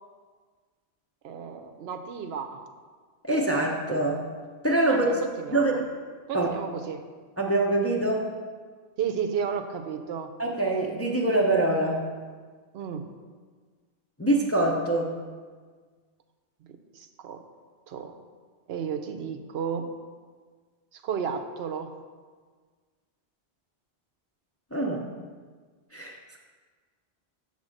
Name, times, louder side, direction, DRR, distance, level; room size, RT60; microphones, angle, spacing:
voice 1, 1.2-2.6 4.9-5.8 6.3-7.0 9.0-10.3 12.7-13.1 16.9-17.4 17.9-18.1 18.7-19.9 20.9-21.9, right 7 dB, 75° right, 7 dB, 0.8 m, -33 dB
voice 2, 3.2-4.2 4.6-5.2 5.5-5.9 6.3-6.5 7.4-8.3 10.4-12.1 14.2-15.2 24.7-25.1 25.9-26.2, right 2 dB, 15° left, -1 dB, 0.5 m, -24 dB
7.4 x 3.6 x 6.4 m, 1.5 s
omnidirectional pair, 1.1 m